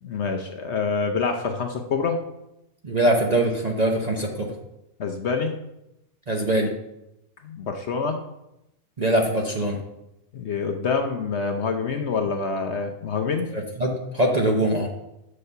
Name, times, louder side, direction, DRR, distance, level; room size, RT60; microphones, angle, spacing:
voice 1, 0.0-2.2 5.0-5.5 7.4-8.2 10.3-13.5, left 5 dB, 55° left, 5 dB, 0.9 m, -26 dB
voice 2, 2.8-4.5 6.3-6.7 9.0-9.8 13.5-14.9, right 1 dB, 35° right, 1 dB, 0.8 m, -22 dB
6.8 x 5.4 x 6.6 m, 0.89 s
omnidirectional pair, 1.5 m